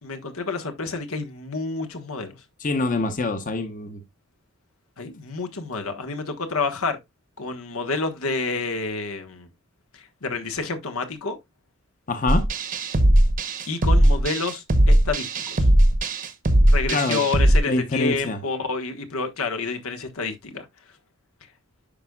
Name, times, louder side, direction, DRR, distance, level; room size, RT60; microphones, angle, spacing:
voice 1, 0.0-2.3 5.0-7.0 7.4-9.5 9.9-11.4 13.6-15.7 16.6-20.7, left 4 dB, 90° left, 1.3 m, -29 dB
voice 2, 2.6-4.0 12.1-12.5 16.9-17.2 17.7-18.4, left 2 dB, 40° left, 0.9 m, -25 dB
sound 1, 12.3-17.6, right 1 dB, 40° right, 0.9 m, -18 dB
10.0 x 5.2 x 2.3 m
head